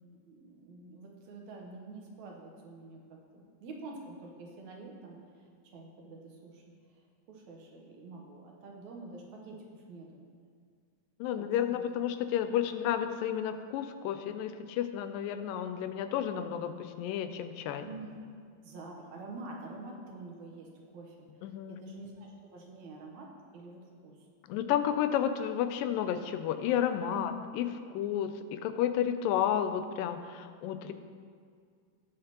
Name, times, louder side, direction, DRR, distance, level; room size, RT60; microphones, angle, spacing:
voice 1, 0.3-5.2 5.7-6.6 7.3-10.2 11.4-11.8 17.8-18.2 18.6-24.2 27.1-27.3, right 3 dB, 70° right, 0 dB, 2.2 m, -47 dB
voice 2, 11.2-17.8 21.4-21.8 24.5-27.7 27.9-30.9, left 10 dB, 90° left, 9 dB, 2.3 m, -31 dB
17.5 x 6.6 x 2.9 m, 2.1 s
omnidirectional pair, 3.8 m